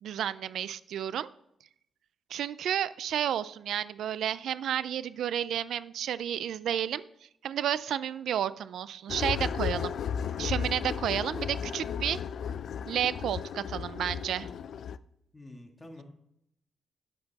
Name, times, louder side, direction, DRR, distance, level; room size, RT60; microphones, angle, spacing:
voice 1, 0.0-1.3 2.3-7.0 7.4-9.9 10.4-12.2 12.9-14.5, right 10 dB, 85° right, 17 dB, 0.3 m, -31 dB
sound 1, 9.1-15.0, left 7 dB, 65° left, 0.3 m, -34 dB
voice 2, 15.3-16.0, left 1 dB, 15° left, 2 dB, 1.6 m, -47 dB
9.0 x 7.9 x 4.0 m, 0.77 s
cardioid pair, 120°, 0 cm